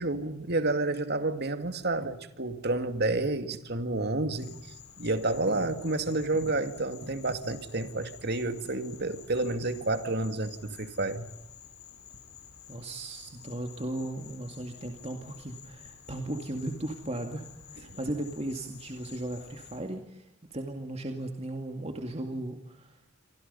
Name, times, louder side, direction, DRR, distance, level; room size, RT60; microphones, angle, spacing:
voice 1, 0.0-11.3, right 2 dB, 50° right, 8 dB, 2.3 m, -30 dB
Insect, 4.3-19.8, left 8 dB, 85° left, 4.3 m, -51 dB
voice 2, 12.7-23.0, right 1 dB, 30° right, 4 dB, 2.2 m, -36 dB
28.5 x 25.0 x 5.6 m, 0.83 s
head